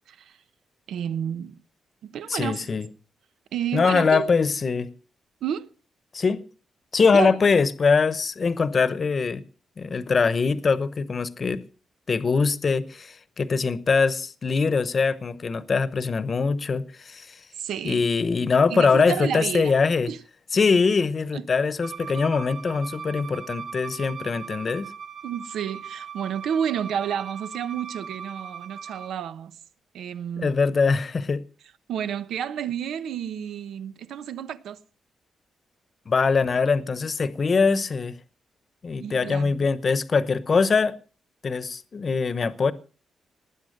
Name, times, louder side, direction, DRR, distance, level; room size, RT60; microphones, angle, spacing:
voice 1, 0.1-0.4 0.9-1.6 2.0-2.7 3.5-4.3 5.4-5.7 7.0-7.4 17.6-18.1 18.7-19.7 20.1-20.2 21.3-21.5 25.2-29.6 29.9-30.5 31.9-34.8 39.0-39.7, right 9 dB, 85° right, 1.0 m, -31 dB
voice 2, 2.3-2.9 3.7-4.9 6.1-6.4 6.9-9.4 9.8-11.6 12.1-17.4 17.8-20.1 20.5-24.9 30.4-31.4 36.1-38.1 38.8-41.0 41.4-42.7, left 4 dB, 35° left, 0.9 m, -22 dB
Bowed string instrument, 21.8-29.1, right 7 dB, 65° right, 5.2 m, -39 dB
19.0 x 9.5 x 6.6 m
wide cardioid pair, 145°, 0 cm